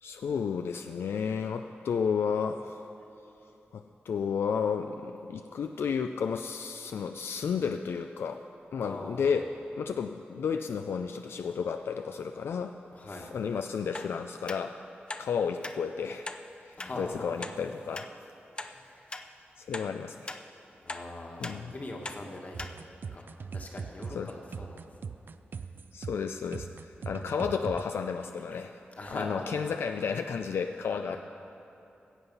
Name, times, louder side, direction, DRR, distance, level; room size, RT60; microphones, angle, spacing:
voice 1, 0.0-2.8 3.7-8.4 8.7-9.5 9.8-12.7 13.0-14.8 15.2-16.3 16.6-18.3 19.6-20.3 21.4-21.7 24.1-24.3 25.9-28.8 29.1-31.2, left 6 dB, 85° left, 7 dB, 0.3 m, -32 dB
voice 2, 8.8-9.3 12.9-13.3 16.8-17.5 18.6-19.1 20.8-22.8 23.1-24.9 25.6-25.7 27.0-27.3 28.5-28.6 29.0-29.5 31.1-31.2, left 2 dB, 45° left, 1 dB, 1.6 m, -42 dB
sound 1, 13.9-14.1 14.5-14.6 15.1-15.3 15.6-15.8 16.2-16.4 16.8-16.9 17.4-17.5 17.9-18.1 18.6-18.7 19.1-19.3 19.7-19.9 20.3-20.4 20.9-21.0 21.4-21.6 22.0-22.2 22.6-22.7 23.2-23.3, left 2 dB, 25° left, 0.5 m, -39 dB
sound 2, 22.5-27.9, right 5 dB, 60° right, 0.4 m, -40 dB
16.0 x 8.0 x 5.5 m, 2.8 s
wide cardioid pair, 95°, 4 cm